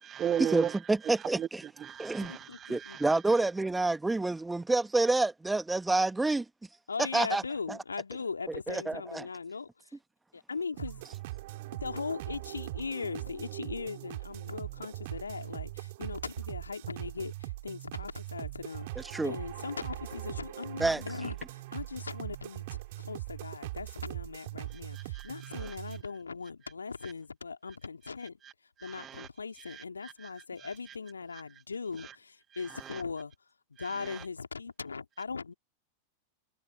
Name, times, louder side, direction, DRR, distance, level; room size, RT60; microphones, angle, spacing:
voice 1, 0.0-3.5 24.7-25.8 27.0-27.1 28.4-28.5 28.8-29.3 29.6-30.3 30.6-30.9 32.0-32.1 32.5-33.0 33.8-34.2, right 9 dB, 25° right, 1.0 m, -38 dB
voice 2, 0.5-1.6 2.0-2.3 2.7-6.4 7.1-7.4 7.7-7.8 8.5-9.3 18.9-19.4 20.8-21.0, right 2 dB, 10° right, 1.8 m, -28 dB
voice 3, 2.2-3.0 6.9-9.7 10.3-11.0 11.8-28.4 28.8-33.3 33.8-35.5, left 5 dB, 75° left, 2.6 m, -39 dB
sound 1, 10.8-26.0, right 19 dB, 50° right, 4.1 m, -41 dB
figure-of-eight pair, 90°, 0 cm